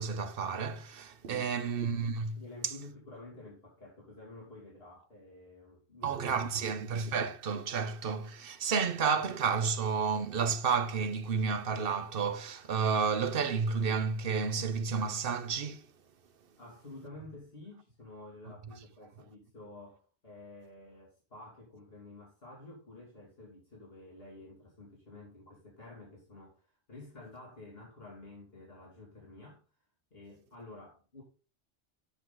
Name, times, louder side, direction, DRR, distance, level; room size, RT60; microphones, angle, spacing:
voice 1, 0.0-2.7 6.0-15.9, right 5 dB, 60° right, 1.0 m, -31 dB
voice 2, 1.2-1.7 2.3-6.7 16.6-29.6 30.1-31.2, left 2 dB, 65° left, 3.0 m, -51 dB
10.0 x 6.2 x 3.8 m
omnidirectional pair, 1.1 m